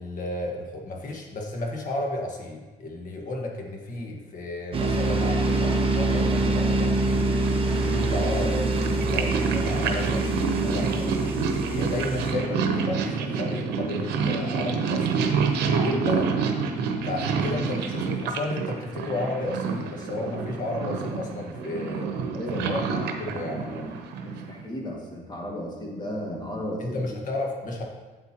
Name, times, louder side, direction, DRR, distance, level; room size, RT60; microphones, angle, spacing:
voice 1, 0.0-7.3 7.8-11.3 11.7-15.4 15.8-16.4 17.0-22.1 22.5-24.0 26.8-27.8, left 2 dB, 50° left, 1 dB, 1.6 m, -33 dB
sound 1, 4.7-12.3, right 2 dB, 30° right, 1.1 m, -25 dB
Purr, 7.0-24.6, right 5 dB, 80° right, 0.9 m, -28 dB
voice 2, 22.3-22.7 24.2-27.1, equal, 25° left, -2 dB, 2.0 m, -34 dB
8.3 x 7.9 x 3.0 m, 1.2 s
cardioid pair, 110°, 17 cm